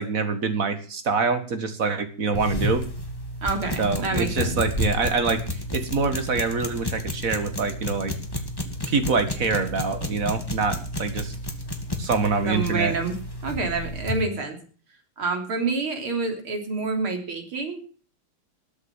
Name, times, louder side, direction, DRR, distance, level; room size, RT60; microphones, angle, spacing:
voice 1, 0.0-2.8 3.8-8.1 8.9-11.3 12.0-12.9, right 4 dB, 40° right, 9 dB, 2.1 m, -25 dB
sound 1, 2.3-14.3, left 1 dB, 10° left, 2.0 m, -31 dB
voice 2, 3.4-4.5 12.5-13.1 13.4-14.6 15.2-17.8, right 4 dB, 75° right, 4 dB, 4.2 m, -27 dB
20.0 x 8.1 x 7.3 m, 0.42 s
omnidirectional pair, 2.4 m